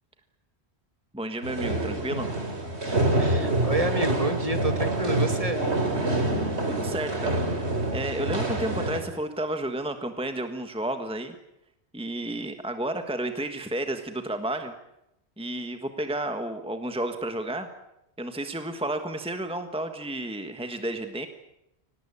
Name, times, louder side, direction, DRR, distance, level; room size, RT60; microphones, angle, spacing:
voice 1, 1.1-2.3 6.7-11.3 11.9-14.7 15.4-17.7 18.2-21.3, right 1 dB, 5° right, 7 dB, 1.5 m, -32 dB
sound 1, 1.4-9.0, right 2 dB, 80° right, 3.4 m, -26 dB
voice 2, 3.2-5.6, right 1 dB, 35° right, 7 dB, 2.4 m, -28 dB
24.5 x 19.0 x 8.6 m, 0.85 s
omnidirectional pair, 1.1 m